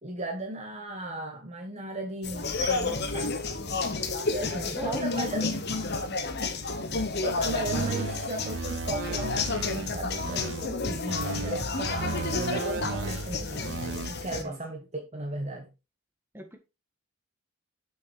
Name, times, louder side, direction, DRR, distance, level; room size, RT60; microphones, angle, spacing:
voice 1, 0.0-3.4 4.3-5.6 6.4-6.6 7.2-13.7 14.1-15.7, right 2 dB, 30° right, 1.2 m, -36 dB
sound 1, 2.2-14.4, left 3 dB, 50° left, 1.2 m, -31 dB
voice 2, 4.4-5.5 12.2-12.4 14.4-14.6 16.3-16.6, right 2 dB, 10° right, 1.6 m, -38 dB
sound 2, 7.7-10.7 11.1-14.1, right 4 dB, 55° right, 0.6 m, -35 dB
6.9 x 6.2 x 4.7 m
head